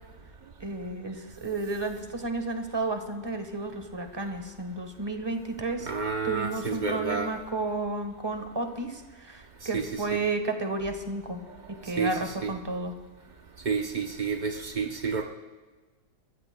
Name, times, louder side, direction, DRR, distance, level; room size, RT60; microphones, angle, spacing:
voice 1, 0.6-5.9 6.2-11.4 11.8-12.9, right 3 dB, 15° right, 5 dB, 1.1 m, -32 dB
voice 2, 5.9-7.3 9.7-10.2 12.0-12.5 13.7-15.2, right 5 dB, 65° right, 3 dB, 0.4 m, -30 dB
24.5 x 13.5 x 2.2 m, 1.3 s
omnidirectional pair, 1.9 m